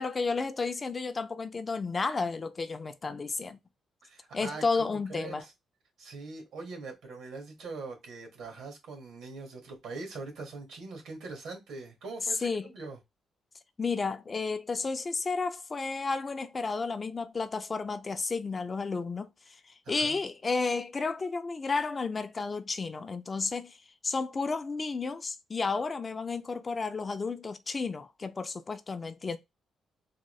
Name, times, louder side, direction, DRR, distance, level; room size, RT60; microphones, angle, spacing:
voice 1, 0.0-3.6 4.3-5.4 12.4-12.7 13.8-19.3 19.9-23.8 24.0-29.4, left 4 dB, 25° left, 0.3 m, -32 dB
voice 2, 4.0-5.5 6.0-13.0 19.8-20.2, right 3 dB, 85° right, 1.5 m, -42 dB
3.6 x 2.3 x 3.0 m
cardioid pair, 145°, 0 cm